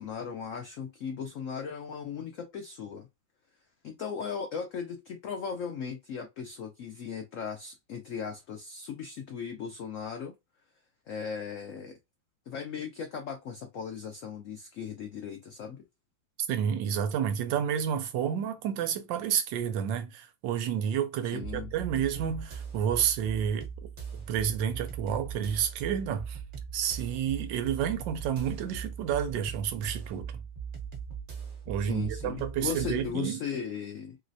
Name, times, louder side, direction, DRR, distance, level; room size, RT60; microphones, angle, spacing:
voice 1, 0.0-3.1 3.8-10.3 11.1-12.0 12.5-15.8 21.3-21.7 31.8-34.2, left 6 dB, 80° left, 0.7 m, -37 dB
voice 2, 16.5-23.7 24.3-26.4 26.7-30.4 31.7-33.4, right 8 dB, 80° right, 1.3 m, -30 dB
sound 1, 21.4-33.1, right 7 dB, 45° right, 0.7 m, -40 dB
3.2 x 3.0 x 2.6 m
omnidirectional pair, 2.0 m